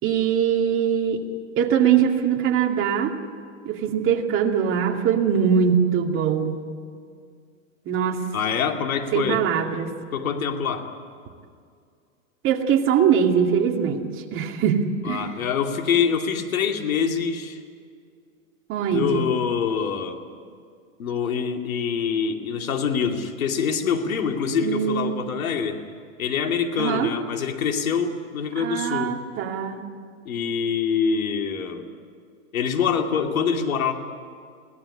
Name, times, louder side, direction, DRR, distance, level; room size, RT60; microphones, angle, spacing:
voice 1, 0.0-1.2 1.6-3.2 3.6-6.6 7.9-8.2 9.1-9.9 12.4-14.0 14.3-15.3 18.7-19.2 24.6-25.3 26.8-27.1 28.6-29.8, right 8 dB, 30° right, 2 dB, 2.5 m, -22 dB
voice 2, 8.3-9.4 10.1-10.9 15.0-17.6 18.9-20.2 21.0-25.8 26.2-29.1 30.3-31.9 32.5-33.9, left 6 dB, 90° left, 4 dB, 2.6 m, -25 dB
23.0 x 17.0 x 9.8 m, 2.2 s
hypercardioid pair, 140°, 40 cm